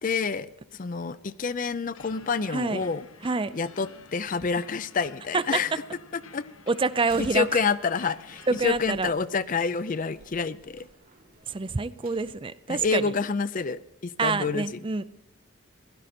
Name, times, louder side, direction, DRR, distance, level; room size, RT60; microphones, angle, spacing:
voice 1, 0.0-3.1 3.5-5.7 6.1-6.4 7.2-10.9 12.7-14.8, left 5 dB, 40° left, 15 dB, 0.5 m, -28 dB
sound 1, 1.9-8.8, left 5 dB, 90° left, 1.2 m, -50 dB
voice 2, 2.5-2.8 3.2-3.5 5.3-5.6 6.7-7.6 8.5-9.1 11.5-13.1 14.2-15.0, right 4 dB, 25° right, 16 dB, 0.4 m, -27 dB
Slam, 6.9-12.3, right 3 dB, 45° right, 1.5 m, -52 dB
16.0 x 12.0 x 4.3 m, 0.90 s
head